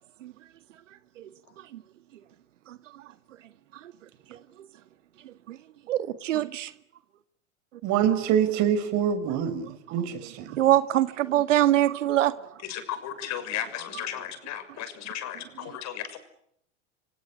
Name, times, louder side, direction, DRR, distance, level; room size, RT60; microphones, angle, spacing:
voice 1, 5.3-5.6 5.9-6.7 10.6-12.3, right 13 dB, 75° right, 1.9 m, -24 dB
voice 2, 7.8-10.6, right 9 dB, 50° right, 6.0 m, -25 dB
voice 3, 12.6-16.2, left 10 dB, 45° left, 6.6 m, -35 dB
28.0 x 25.0 x 8.4 m
hypercardioid pair, 95°, 37 cm